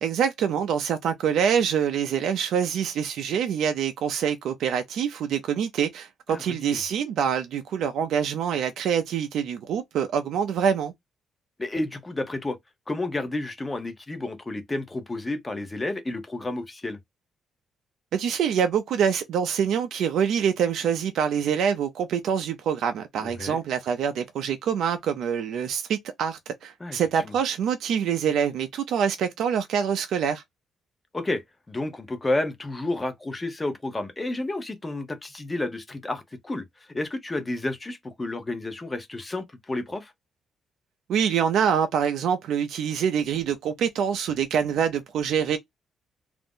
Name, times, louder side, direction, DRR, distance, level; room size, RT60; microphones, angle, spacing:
voice 1, 0.0-10.9 18.1-30.4 41.1-45.6, right 8 dB, 75° right, 0.4 m, -25 dB
voice 2, 6.3-6.8 11.6-12.6 12.9-17.0 23.2-23.6 26.8-27.3 31.1-31.4 31.7-40.1, left 2 dB, 15° left, 0.7 m, -31 dB
2.4 x 2.0 x 3.6 m
cardioid pair, 135°, 0 cm